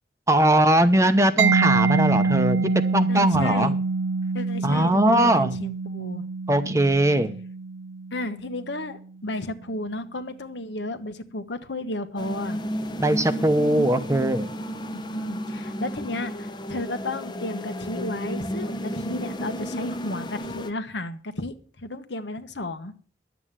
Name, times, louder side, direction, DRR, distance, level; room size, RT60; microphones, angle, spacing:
voice 1, 0.3-3.7 4.6-5.6 6.5-7.3 13.0-14.5, right 1 dB, 15° right, 10 dB, 0.8 m, -20 dB
Mallet percussion, 1.4-8.9, right 4 dB, 80° right, 0.6 m, -25 dB
voice 2, 3.1-3.8 4.3-6.2 8.1-12.6 14.9-22.9, left 2 dB, 70° left, 9 dB, 1.3 m, -33 dB
sound 1, 12.2-20.7, equal, 25° left, 0.8 m, -32 dB
11.0 x 8.3 x 7.4 m, 0.42 s
head